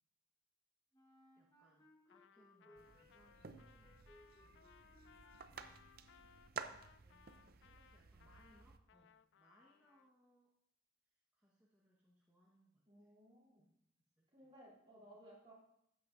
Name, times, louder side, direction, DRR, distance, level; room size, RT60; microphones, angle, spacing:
Wind instrument woodwind instrument, 0.9-6.7, left 1 dB, 20° left, 1.1 m, -67 dB
voice 1, 1.4-4.7 5.4-5.8 7.0-10.5 11.0-13.1 13.6-13.7 14.2-14.5 15.0-15.1, equal, 10° right, -6 dB, 1.1 m, -73 dB
Trumpet, 2.1-10.1, left 8 dB, 75° left, 0.3 m, -67 dB
sound 1, 2.8-8.8, right 5 dB, 55° right, 0.5 m, -53 dB
voice 2, 12.9-13.6 14.3-15.5, right 1 dB, 30° right, -5 dB, 3.1 m, -60 dB
13.5 x 9.0 x 2.5 m, 0.76 s
head